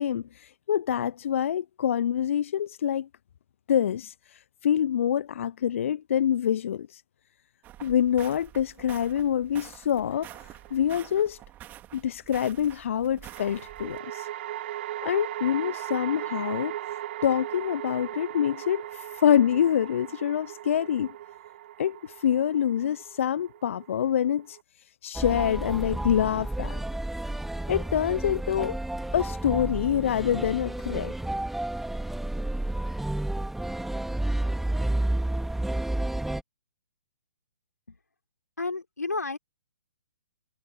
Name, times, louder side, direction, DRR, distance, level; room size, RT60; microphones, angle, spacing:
voice 1, 0.0-3.1 3.7-7.0 7.8-11.4 11.9-14.3 15.0-21.1 21.8-24.6 25.0-26.8 27.7-28.8 29.1-31.1, left 9 dB, 50° left, 0.9 m, -26 dB
sound 1, 7.6-14.0, right 14 dB, 20° right, 2.8 m, -47 dB
sound 2, 10.1-10.8 13.3-24.6, right 13 dB, 45° right, 4.6 m, -38 dB
sound 3, 25.1-36.4, right 1 dB, ahead, 2.9 m, -31 dB
voice 2, 38.6-39.4, left 3 dB, 80° left, 4.7 m, -31 dB
figure-of-eight pair, 125°, 9 cm